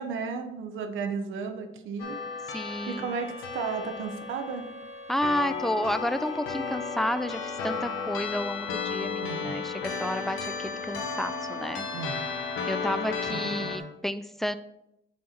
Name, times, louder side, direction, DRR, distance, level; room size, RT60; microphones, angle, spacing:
voice 1, 0.0-2.2 2.9-4.7 9.2-9.6 11.9-12.3 13.3-13.7, right 5 dB, 80° right, 6 dB, 0.9 m, -34 dB
sound 1, 2.0-13.8, left 5 dB, 90° left, 1.1 m, -34 dB
voice 2, 2.5-3.2 5.1-11.9 12.7-14.6, left 1 dB, ahead, 12 dB, 0.4 m, -31 dB
Bowed string instrument, 2.8-8.0, right 1 dB, 35° right, 1.2 m, -49 dB
7.4 x 4.6 x 4.3 m, 0.85 s
cardioid pair, 90°, 20 cm